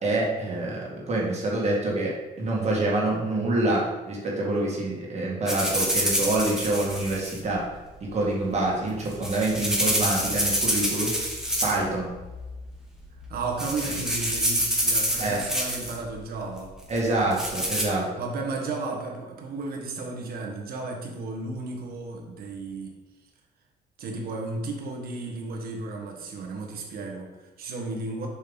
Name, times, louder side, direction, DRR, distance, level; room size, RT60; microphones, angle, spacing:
voice 1, 0.0-7.7 8.0-11.2 11.6-12.1 15.2-15.4 16.9-18.1, right 2 dB, 40° right, -3 dB, 2.0 m, -26 dB
sound 1, 5.5-7.4 8.9-11.9 12.2-12.6 13.2-13.3 13.6-16.0 17.0-17.8, equal, 5° right, 1.5 m, -27 dB
voice 2, 13.3-16.8 18.2-22.9 24.0-28.3, right 3 dB, 60° right, 1 dB, 1.6 m, -33 dB
7.3 x 5.3 x 4.0 m, 1.2 s
cardioid pair, 110°, 17 cm